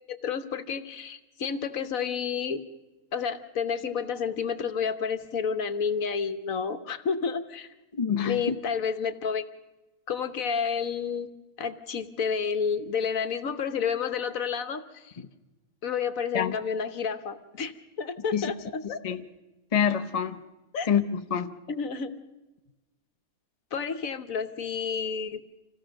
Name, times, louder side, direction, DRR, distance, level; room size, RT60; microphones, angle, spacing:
voice 1, 0.1-2.6 3.1-7.7 8.2-9.4 10.1-11.3 11.6-15.1 15.8-17.7 18.0-19.0 20.7-20.9 21.7-22.1 23.7-25.4, left 6 dB, 70° left, 1.4 m, -30 dB
voice 2, 8.0-8.4 16.3-16.5 18.3-18.5 19.0-19.2 19.7-20.4 20.9-21.5, left 8 dB, 30° left, 0.8 m, -26 dB
26.5 x 16.5 x 6.4 m
omnidirectional pair, 1.5 m